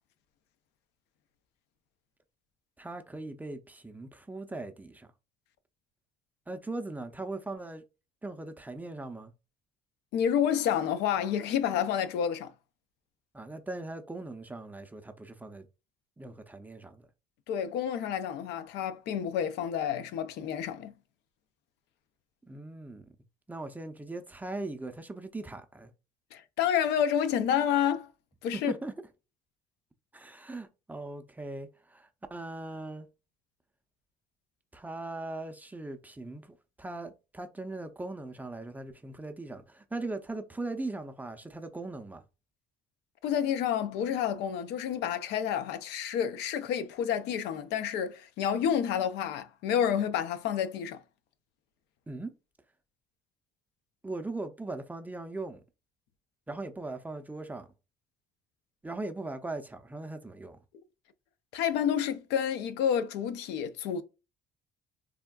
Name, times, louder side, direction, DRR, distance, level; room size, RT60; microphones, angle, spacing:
voice 1, 2.8-5.1 6.5-7.8 8.2-9.3 13.3-15.7 16.2-17.1 22.5-23.1 23.5-25.9 28.5-28.9 30.1-33.1 34.7-42.2 52.1-52.3 54.0-55.6 56.5-57.7 58.8-60.6, right 2 dB, 10° right, 0.4 m, -39 dB
voice 2, 10.1-12.5 17.5-20.9 26.3-28.1 28.4-28.7 43.2-51.0 61.5-64.0, left 9 dB, 85° left, 0.4 m, -29 dB
3.5 x 2.2 x 2.2 m
cardioid pair, 110°, 17 cm